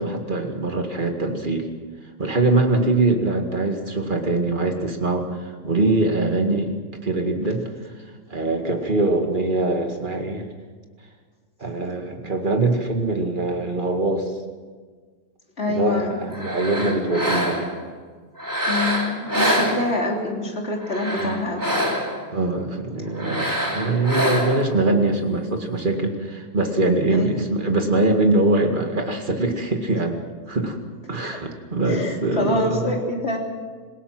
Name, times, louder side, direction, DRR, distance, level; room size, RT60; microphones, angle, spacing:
voice 1, 0.0-1.7 2.2-6.7 7.0-7.7 8.3-10.4 11.6-14.3 15.7-17.7 21.2-21.4 22.3-30.2 30.5-30.8 31.1-32.9, right 2 dB, 25° right, 3 dB, 2.1 m, -23 dB
voice 2, 15.6-16.2 18.7-21.7 27.1-27.4 31.2-31.4 31.9-33.4, left 2 dB, 35° left, 0 dB, 3.6 m, -26 dB
sound 1, 16.3-17.8 18.4-20.2 20.8-22.3 23.2-24.7, equal, 10° right, 3.2 m, -25 dB
27.0 x 17.0 x 6.1 m, 1.5 s
omnidirectional pair, 2.0 m